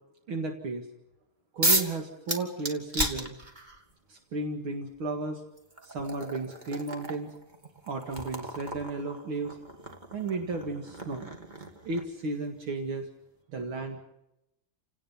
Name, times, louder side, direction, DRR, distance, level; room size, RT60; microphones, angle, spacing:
voice 1, 0.3-0.9 1.5-3.3 4.1-5.4 5.8-7.3 7.9-9.6 10.1-11.3 11.9-13.1 13.5-14.1, right 3 dB, 70° right, 3 dB, 2.7 m, -34 dB
sound 1, 1.6-2.0 2.3-3.8 4.9-5.0 5.6-12.2, right 1 dB, 20° right, 2.2 m, -33 dB
29.5 x 18.0 x 5.7 m, 0.87 s
omnidirectional pair, 2.3 m